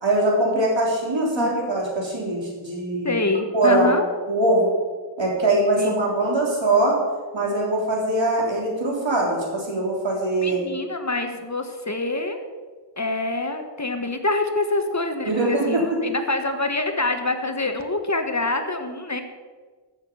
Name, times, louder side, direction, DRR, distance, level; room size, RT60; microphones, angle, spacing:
voice 1, 0.0-3.2 3.5-3.9 4.3-4.7 5.2-7.0 7.3-10.6 15.3-16.0, right 2 dB, 75° right, -2 dB, 3.5 m, -22 dB
voice 2, 3.0-4.1 5.8-6.0 10.4-12.4 13.0-19.2, left 2 dB, 40° left, 6 dB, 1.3 m, -26 dB
14.0 x 6.8 x 6.8 m, 1.4 s
wide cardioid pair, 50°, 45 cm